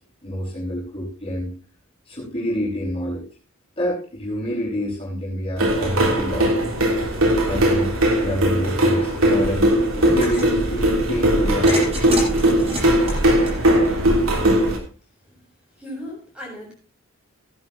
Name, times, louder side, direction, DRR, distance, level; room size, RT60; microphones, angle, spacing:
voice 1, 0.2-1.5 2.1-3.3 3.8-6.8 7.5-7.9 8.2-12.2, equal, 25° left, -6 dB, 5.9 m, -27 dB
sound 1, 5.6-14.8, right 1 dB, 70° right, 3.3 m, -19 dB
sound 2, 10.0-10.5 11.7-14.2, right 1 dB, 30° right, 7.2 m, -29 dB
voice 2, 15.8-16.7, equal, 5° right, -2 dB, 7.6 m, -36 dB
17.0 x 11.5 x 3.0 m, 0.37 s
head